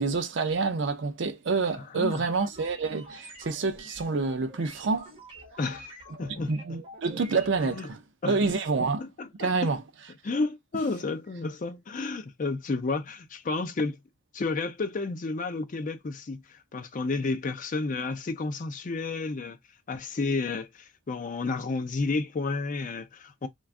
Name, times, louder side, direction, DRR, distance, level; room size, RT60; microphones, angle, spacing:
voice 1, 0.0-5.1 6.5-8.0 8.3-9.0 9.4-9.8, right 4 dB, 65° right, 0.5 m, -27 dB
voice 2, 1.7-2.2 5.6-5.9 6.2-6.8 7.6-7.9 8.2-8.4 9.0-9.7 10.2-14.0 14.3-19.6 19.9-23.5, left 3 dB, 40° left, 0.4 m, -31 dB
sound 1, 2.0-7.9, right 1 dB, 30° right, 1.1 m, -48 dB
2.5 x 2.3 x 3.4 m
head